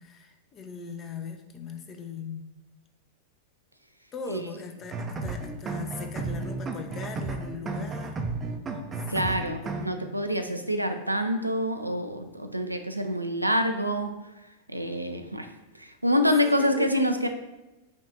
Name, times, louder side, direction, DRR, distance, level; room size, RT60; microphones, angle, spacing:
voice 1, 0.0-2.5 4.1-8.2 9.2-9.9 10.3-10.6 16.4-16.9, left 4 dB, 25° left, 6 dB, 0.5 m, -40 dB
sound 1, 4.8-9.9, right 3 dB, 20° right, 0.5 m, -33 dB
voice 2, 9.1-14.1 14.7-15.5 15.8-17.3, equal, 90° right, 6 dB, 0.4 m, -26 dB
5.1 x 2.4 x 3.9 m, 1.0 s
figure-of-eight pair, 95°, 0 cm